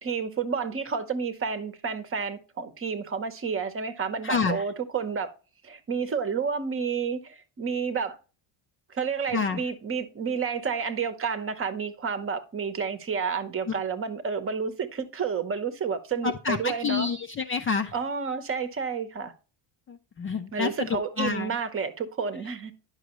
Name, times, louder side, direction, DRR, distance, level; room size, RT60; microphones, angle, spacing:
voice 1, 0.0-5.3 5.6-8.2 8.9-17.1 17.9-19.3 20.5-22.7, right 6 dB, 25° right, 0.9 m, -30 dB
voice 2, 4.2-4.6 9.3-9.6 13.7-13.8 16.2-17.9 19.9-21.5, left 5 dB, 25° left, 0.5 m, -28 dB
10.5 x 6.1 x 3.0 m
cardioid pair, 170°, 48 cm